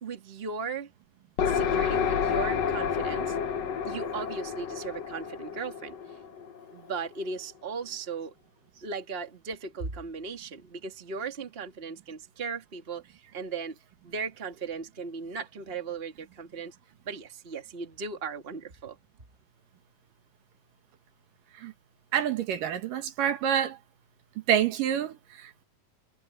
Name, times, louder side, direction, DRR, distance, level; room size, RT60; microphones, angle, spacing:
voice 1, 0.0-0.9 1.5-3.4 3.8-5.9 6.7-8.3 8.8-13.8 14.0-16.7 17.1-19.0, right 4 dB, 20° right, 1.9 m, -37 dB
sound 1, 1.4-7.0, left 7 dB, 55° left, 2.3 m, -29 dB
voice 2, 22.1-23.8 24.5-25.7, right 9 dB, 70° right, 3.0 m, -27 dB
omnidirectional pair, 4.1 m